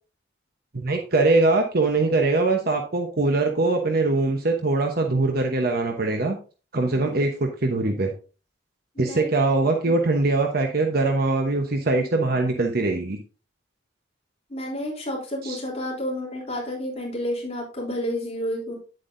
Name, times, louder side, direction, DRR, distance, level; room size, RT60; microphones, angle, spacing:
voice 1, 0.7-6.4 6.7-8.1 9.0-13.2 15.4-15.6, right 2 dB, 55° right, 3 dB, 1.0 m, -22 dB
voice 2, 8.9-9.3 9.8-9.9 14.5-18.7, left 1 dB, 35° left, -3 dB, 3.4 m, -30 dB
9.7 x 7.7 x 2.6 m, 0.36 s
head